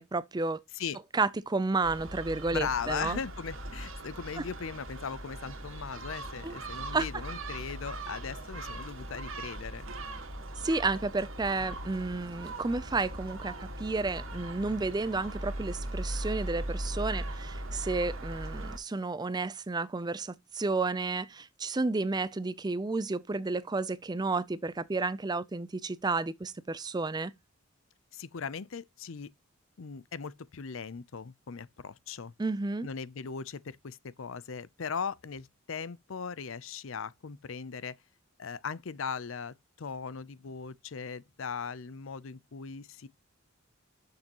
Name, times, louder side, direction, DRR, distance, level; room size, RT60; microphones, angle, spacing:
voice 1, 0.0-0.6 1.1-3.2 6.4-6.5 6.9-7.1 10.6-27.3 32.4-32.9, right 3 dB, 20° right, 0.4 m, -31 dB
Gull seagull, 1.8-18.8, right 1 dB, 70° right, 1.8 m, -39 dB
voice 2, 2.5-9.9 28.1-29.3 29.8-32.3 32.8-38.0 38.4-43.1, left 6 dB, 70° left, 0.6 m, -38 dB
11.5 x 6.7 x 3.0 m
head